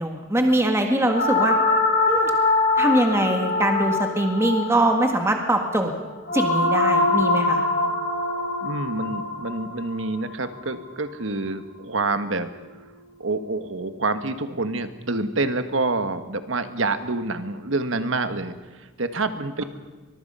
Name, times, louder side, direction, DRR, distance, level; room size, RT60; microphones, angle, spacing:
voice 1, 0.0-1.6 2.1-2.3 2.8-5.9 6.3-7.7, right 1 dB, 15° right, 3 dB, 1.7 m, -22 dB
sound 1, 1.1-11.3, left 3 dB, 50° left, 4.6 m, -24 dB
voice 2, 8.6-12.5 13.2-19.6, right 3 dB, 70° right, 9 dB, 1.5 m, -27 dB
23.5 x 22.5 x 5.6 m, 1.2 s
head